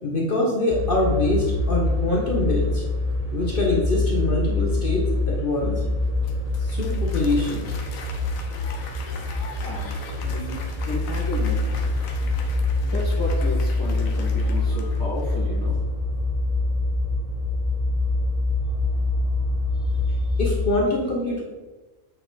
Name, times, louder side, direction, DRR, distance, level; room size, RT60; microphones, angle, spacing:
voice 1, 0.0-2.8 3.3-5.8 6.6-7.7 20.4-21.4, left 2 dB, 40° left, -2 dB, 1.0 m, -24 dB
sound 1, 0.7-20.7, left 2 dB, 35° right, 0.6 m, -25 dB
Applause, 6.0-15.6, left 4 dB, 70° left, 1.2 m, -41 dB
voice 2, 9.6-12.0 12.8-15.8 19.7-20.4, equal, 15° left, -9 dB, 1.4 m, -34 dB
7.9 x 4.3 x 4.0 m, 1.2 s
omnidirectional pair, 1.5 m